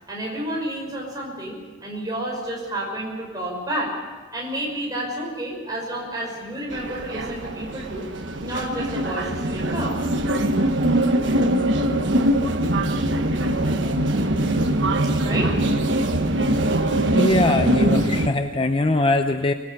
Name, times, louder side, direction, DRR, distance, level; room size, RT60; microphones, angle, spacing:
voice 1, 0.1-3.9 4.3-8.1 8.4-9.9 15.2-15.6, right 1 dB, 20° right, -2 dB, 5.8 m, -30 dB
sound 1, 6.7-18.3, right 1 dB, 65° right, 1.3 m, -22 dB
voice 2, 17.1-19.5, left 2 dB, 25° left, 7 dB, 0.7 m, -21 dB
24.5 x 20.0 x 6.9 m, 1.3 s
head